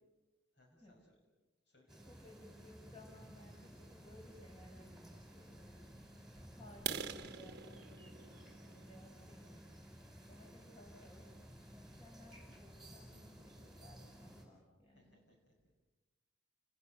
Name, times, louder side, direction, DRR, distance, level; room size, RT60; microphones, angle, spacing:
voice 1, 0.5-1.2 1.7-2.1 8.4-8.5 10.2-10.4 14.9-15.8, left 1 dB, 55° left, 1 dB, 5.8 m, -69 dB
sound 1, 1.9-14.5, equal, ahead, 4.9 m, -55 dB
voice 2, 2.0-5.0 5.3-9.6 10.3-11.3 11.7-15.2, left 1 dB, 25° left, 1 dB, 5.6 m, -60 dB
sound 2, 6.7-10.5 11.0-11.2 11.7-11.8 12.2-12.4 12.7-12.8 13.2-13.3 13.6-14.1, right 7 dB, 50° right, 1.1 m, -46 dB
29.5 x 20.5 x 6.7 m, 1.1 s
head